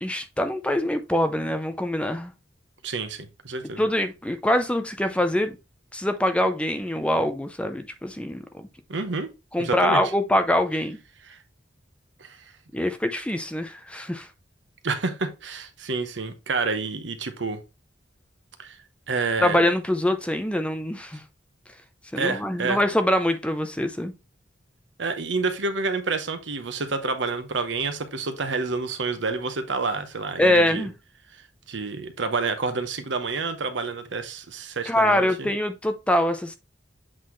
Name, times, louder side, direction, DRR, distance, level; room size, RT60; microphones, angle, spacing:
voice 1, 0.0-2.3 3.8-5.6 5.9-8.7 9.5-11.0 12.7-14.3 19.4-21.2 22.1-24.1 30.4-30.9 34.9-36.6, left 1 dB, 5° left, 0.5 m, -24 dB
voice 2, 2.8-3.8 8.9-9.3 9.6-10.0 11.3-11.4 12.2-12.4 14.8-17.6 18.6-18.8 19.1-19.6 22.2-22.8 25.0-30.9 31.3-31.4 31.7-35.5, right 4 dB, 75° right, 1.0 m, -28 dB
7.5 x 4.0 x 3.1 m
head